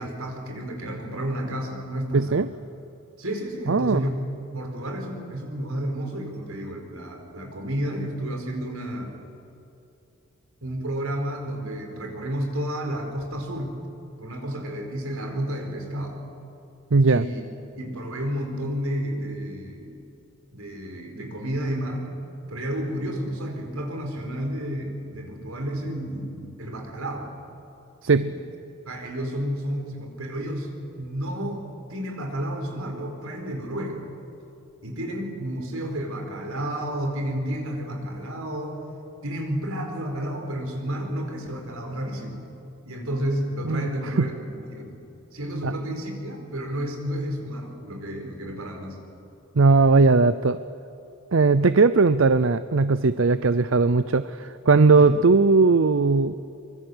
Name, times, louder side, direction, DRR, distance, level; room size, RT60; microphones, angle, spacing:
voice 1, 0.0-2.5 3.2-9.2 10.6-13.7 14.2-16.2 17.1-17.4 17.8-20.1 20.5-22.1 22.5-27.3 28.0-28.3 28.9-30.7 31.0-31.6 31.9-34.1 34.8-38.8 39.2-42.4 42.8-45.0 45.3-49.0 54.9-55.1, equal, 85° right, 3 dB, 4.7 m, -31 dB
voice 2, 2.1-2.5 3.7-4.0 16.9-17.2 28.0-28.3 43.7-43.9 44.2-44.3 45.6-45.7 49.6-50.6 51.3-56.3, right 4 dB, 65° right, 13 dB, 0.6 m, -18 dB
24.5 x 23.0 x 8.0 m, 2.9 s
head